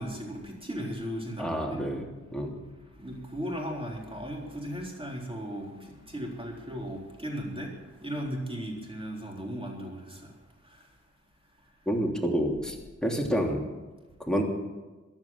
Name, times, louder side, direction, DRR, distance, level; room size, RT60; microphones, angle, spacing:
voice 1, 0.0-2.0 2.9-10.4 10.6-10.9, equal, 20° right, -1 dB, 3.9 m, -37 dB
voice 2, 1.4-2.1 2.3-2.6 11.9-12.8 13.0-13.7 14.3-14.4, equal, ahead, 0 dB, 3.0 m, -28 dB
14.5 x 11.0 x 7.4 m, 1.2 s
wide cardioid pair, 65°, 29 cm